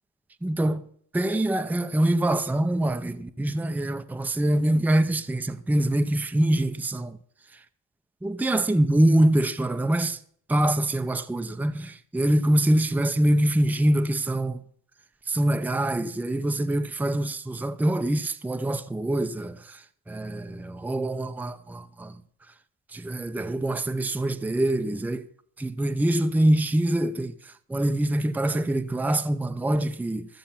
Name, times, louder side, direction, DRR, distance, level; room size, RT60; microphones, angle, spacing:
voice 1, 0.4-0.8 1.1-7.2 8.2-10.2 10.5-14.6 15.3-19.6 20.1-22.1 22.9-25.2 25.6-27.3 27.7-30.3, right 1 dB, 5° right, 0.6 m, -24 dB
14.5 x 6.9 x 5.7 m
cardioid pair, 100°, 39 cm